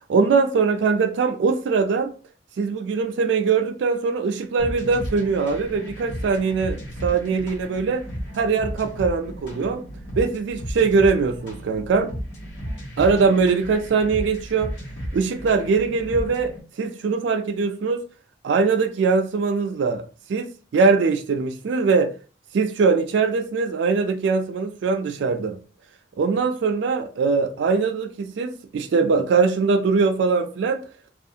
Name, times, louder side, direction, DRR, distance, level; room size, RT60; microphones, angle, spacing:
voice 1, 0.1-2.1 2.6-8.1 8.3-9.8 10.2-12.1 13.0-14.7 15.1-18.0 18.4-20.0 20.3-22.1 22.5-25.6 26.2-30.8, right 4 dB, 75° right, 0.3 m, -21 dB
sound 1, 4.6-16.6, equal, 70° left, 1.0 m, -34 dB
2.4 x 2.4 x 2.7 m
head